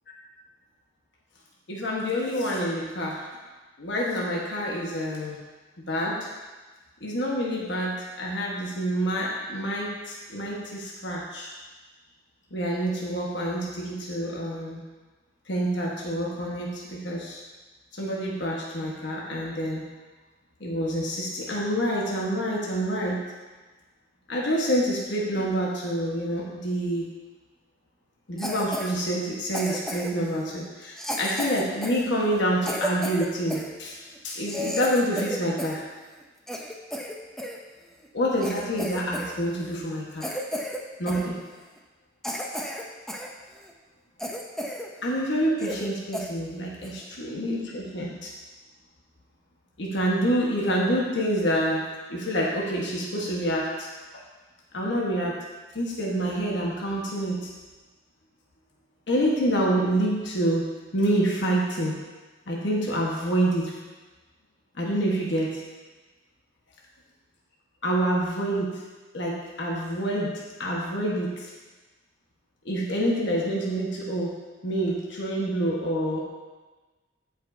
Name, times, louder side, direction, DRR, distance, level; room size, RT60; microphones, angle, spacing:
voice 1, 1.7-3.2 3.8-5.4 5.9-6.3 7.0-11.5 12.5-14.8 15.5-17.4 18.0-19.8 20.6-23.2 24.3-27.1 28.3-35.8 38.1-40.3 41.0-41.4 45.0-48.3 49.8-53.9 54.7-55.4 55.7-57.5 59.1-61.9 62.5-63.8 64.8-65.6 67.8-68.8 69.1-71.5 72.6-74.4 74.6-76.2, equal, 65° left, -3 dB, 1.3 m, -27 dB
Cough, 28.4-28.9 29.5-30.2 31.0-33.7 34.1-34.2 34.5-35.8 36.1-37.6 38.0-38.1 38.4-39.3 39.6-39.8 40.2-40.8 41.1-41.3 41.8-41.9 42.2-43.3 43.7-43.8 44.2-44.9 45.2-45.3 45.6-45.9 46.1-46.3 46.8-47.0, equal, 5° left, 0.6 m, -33 dB
15.0 x 5.3 x 2.7 m, 1.3 s
head